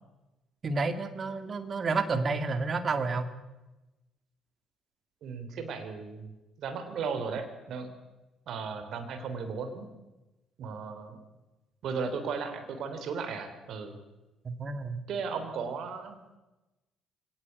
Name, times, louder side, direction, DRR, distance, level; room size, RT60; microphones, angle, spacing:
voice 1, 0.6-3.3 14.4-15.0, right 3 dB, 40° right, 9 dB, 2.1 m, -30 dB
voice 2, 5.2-7.9 8.5-9.9 10.6-11.2 11.8-14.0 15.1-16.2, right 5 dB, 55° right, 7 dB, 3.4 m, -36 dB
22.5 x 18.5 x 8.2 m, 1.0 s
figure-of-eight pair, 45°, 0 cm